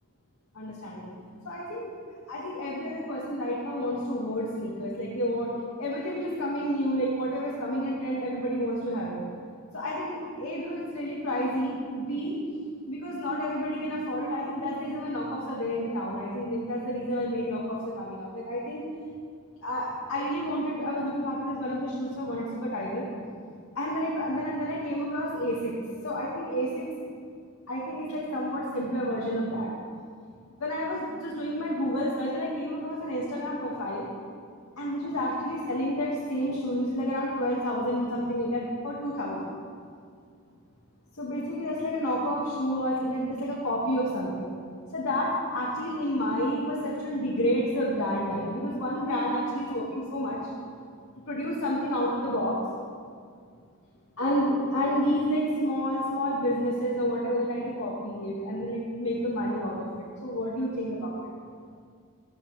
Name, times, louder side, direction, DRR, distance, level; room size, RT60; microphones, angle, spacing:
voice 1, 0.6-1.2 1.5-1.9 2.3-5.5 5.8-9.2 9.7-12.4 12.9-18.8 19.6-23.1 23.8-25.7 26.0-26.9 27.7-29.7 30.6-34.1 34.8-39.5 41.2-44.5 44.9-50.4 51.3-52.6 54.2-59.9 60.2-61.1, equal, 90° left, -6 dB, 2.3 m, -30 dB
15.0 x 13.5 x 3.5 m, 2.1 s
head